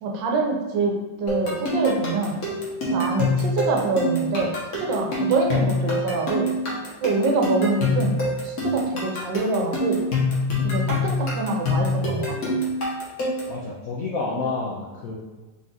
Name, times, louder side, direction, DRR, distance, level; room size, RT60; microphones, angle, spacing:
voice 1, 0.0-0.9 1.2-2.4 2.9-4.5 4.8-6.5 7.0-8.1 8.4-10.0 10.6-12.6, right 3 dB, 75° right, 0 dB, 1.4 m, -25 dB
sound 1, 1.3-13.6, left 1 dB, 55° left, 1.3 m, -25 dB
voice 2, 13.5-15.1, left 3 dB, 75° left, -4 dB, 0.8 m, -29 dB
4.1 x 2.4 x 3.8 m, 1.2 s
omnidirectional pair, 2.0 m